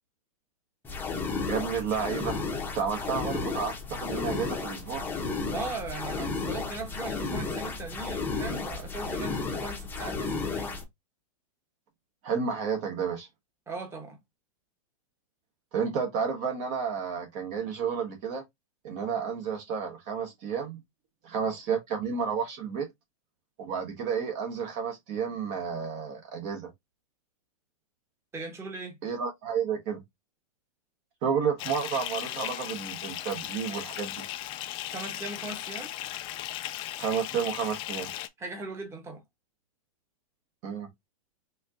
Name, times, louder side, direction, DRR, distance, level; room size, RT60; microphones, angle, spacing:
brown noise scifi flange, 0.8-10.8, left 4 dB, 10° left, 0.8 m, -33 dB
voice 1, 1.5-2.4 2.7-5.1 12.2-13.3 15.7-18.4 18.8-20.8 21.2-22.9 23.6-26.7 29.0-30.0 31.2-34.2 37.0-38.1 40.6-40.9, right 6 dB, 40° right, 1.0 m, -31 dB
voice 2, 5.5-10.8 13.7-14.2 28.3-29.0 34.9-35.9 38.4-39.2, right 3 dB, 15° right, 1.1 m, -38 dB
Bathtub (filling or washing) / Fill (with liquid), 31.6-38.3, left 13 dB, 30° left, 0.3 m, -37 dB
4.3 x 2.6 x 2.4 m
hypercardioid pair, 125°, 19 cm